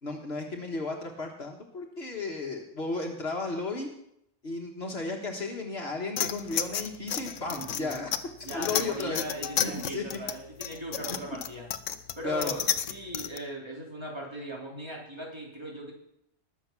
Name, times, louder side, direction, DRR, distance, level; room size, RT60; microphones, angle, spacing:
voice 1, 0.0-3.9 4.4-8.1 8.5-9.2 9.6-10.0 12.2-12.5, left 3 dB, 60° left, 2 dB, 1.7 m, -34 dB
sound 1, 6.2-13.4, left 9 dB, 90° left, 1.1 m, -32 dB
voice 2, 7.5-7.9 8.4-11.7 12.2-15.9, right 1 dB, 20° right, -2 dB, 3.7 m, -39 dB
20.0 x 7.2 x 6.0 m, 0.78 s
omnidirectional pair, 1.2 m